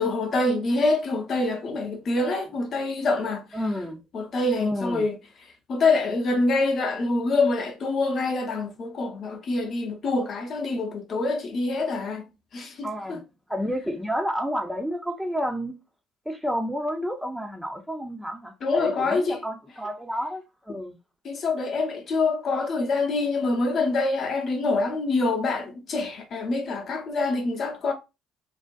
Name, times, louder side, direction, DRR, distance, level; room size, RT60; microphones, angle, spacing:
voice 1, 0.0-3.4 4.1-5.2 5.7-12.2 12.5-13.2 18.6-19.4 21.2-27.9, left 3 dB, 45° left, 0.7 m, -25 dB
voice 2, 3.5-4.0 4.6-5.1 12.8-13.2 13.5-15.8 16.3-21.0, equal, ahead, 0.5 m, -30 dB
2.4 x 2.1 x 2.4 m
figure-of-eight pair, 50°, 0 cm